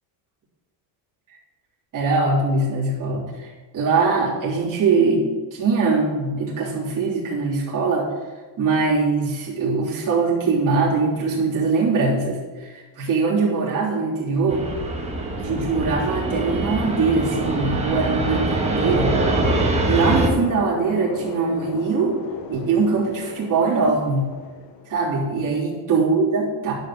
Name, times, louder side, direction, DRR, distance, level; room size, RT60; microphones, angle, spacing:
voice 1, 1.9-8.1 8.6-14.7 15.4-19.2 19.9-22.2 22.5-24.3 24.9-26.7, right 4 dB, 40° right, -5 dB, 3.4 m, -22 dB
Fixed-wing aircraft airplane, 14.5-20.3, right 2 dB, 15° right, 1.2 m, -23 dB
sound 1, 20.4-25.3, left 6 dB, 45° left, 1.0 m, -37 dB
10.5 x 5.5 x 7.0 m, 1.3 s
cardioid pair, 160°, 48 cm